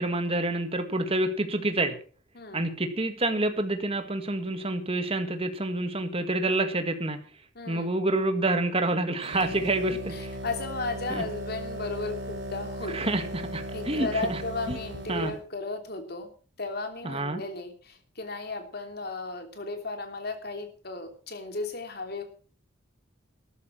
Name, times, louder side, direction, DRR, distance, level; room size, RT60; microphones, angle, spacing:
voice 1, 0.0-2.0 2.5-7.2 7.7-10.3 11.1-11.2 12.9-14.4 14.7-14.8 15.1-15.3 17.0-17.4, right 2 dB, 30° right, 7 dB, 1.9 m, -28 dB
voice 2, 2.3-2.7 7.5-7.9 9.9-13.2 13.7-16.3 16.6-22.2, left 3 dB, 50° left, 6 dB, 3.2 m, -35 dB
sound 1, 9.2-15.4, equal, 65° right, 3.2 m, -37 dB
13.5 x 12.0 x 6.0 m, 0.42 s
head